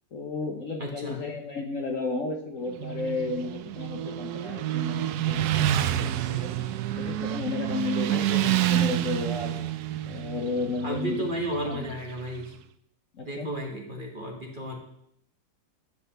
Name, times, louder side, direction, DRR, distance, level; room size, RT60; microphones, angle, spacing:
voice 1, 0.1-5.5 5.8-6.5 6.9-9.6 10.1-11.2 11.6-11.9 13.1-13.5, left 3 dB, 55° left, 2 dB, 1.1 m, -33 dB
voice 2, 0.8-1.2 8.1-8.5 10.8-12.5 13.2-14.8, right 1 dB, 30° right, 1 dB, 1.4 m, -33 dB
Motorcycle, 2.7-12.5, right 12 dB, 70° right, 0.9 m, -28 dB
11.0 x 4.1 x 6.6 m, 0.70 s
omnidirectional pair, 2.0 m